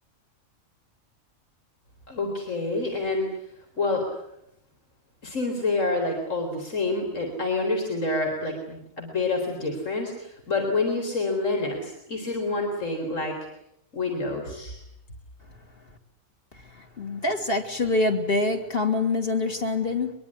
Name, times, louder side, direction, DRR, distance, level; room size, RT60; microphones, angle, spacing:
voice 1, 2.1-3.3 3.8-4.0 5.2-13.3 13.9-14.8, left 3 dB, 65° left, 2 dB, 4.5 m, -27 dB
voice 2, 16.7-20.1, left 3 dB, 45° left, 3 dB, 3.1 m, -25 dB
23.0 x 22.5 x 9.8 m, 0.78 s
omnidirectional pair, 1.4 m